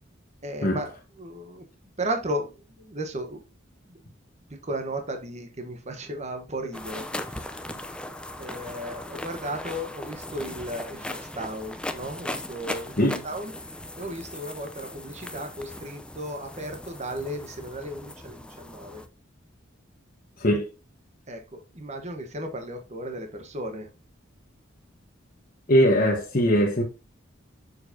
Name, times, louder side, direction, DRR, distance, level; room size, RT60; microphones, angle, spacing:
voice 1, 0.4-1.6 2.0-3.4 3.8-4.0 4.5-7.4 8.4-19.0 21.3-23.9, right 1 dB, 35° right, 1.1 m, -35 dB
sound 1, 6.7-19.1, left 1 dB, 5° left, 0.6 m, -38 dB
voice 2, 20.4-20.7 25.7-26.8, equal, 45° left, 1.3 m, -21 dB
7.1 x 6.6 x 2.7 m
head